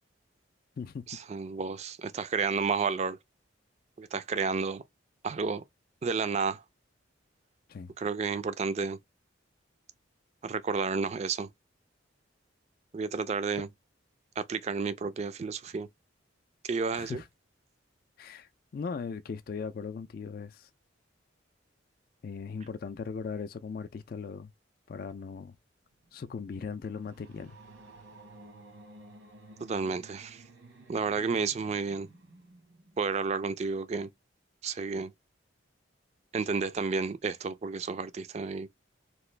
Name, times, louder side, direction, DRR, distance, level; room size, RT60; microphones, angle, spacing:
voice 1, 1.1-3.2 4.0-4.8 5.2-5.6 6.0-6.6 8.0-9.0 10.4-11.5 12.9-13.7 14.4-15.9 16.6-17.2 29.6-30.4 30.9-32.1 33.0-34.1 34.6-35.1 36.3-38.7, right 5 dB, 35° right, 0.3 m, -31 dB
voice 2, 16.9-17.2 18.2-20.7 22.2-24.5 24.9-25.6 26.1-27.6, left 5 dB, 50° left, 0.3 m, -38 dB
sound 1, 25.9-33.3, right 2 dB, 85° right, 1.1 m, -54 dB
2.9 x 2.4 x 3.2 m
head